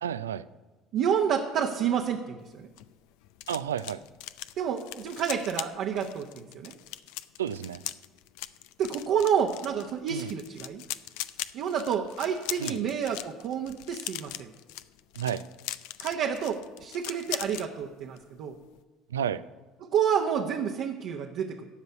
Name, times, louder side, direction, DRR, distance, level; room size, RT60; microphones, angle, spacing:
voice 1, 0.0-0.5 3.5-4.0 7.4-7.8 10.1-10.3 12.6-12.8 15.1-15.4 19.1-19.4, right 9 dB, 90° right, 16 dB, 0.4 m, -31 dB
voice 2, 0.9-2.6 4.6-6.7 8.8-10.8 11.5-14.5 16.0-18.5 19.8-21.6, right 8 dB, 60° right, 2 dB, 1.0 m, -29 dB
sound 1, 2.5-17.7 18.0-18.3 18.5-18.8, left 14 dB, 70° left, 0.4 m, -40 dB
14.5 x 5.4 x 9.4 m, 1.2 s
hypercardioid pair, 65°, 0 cm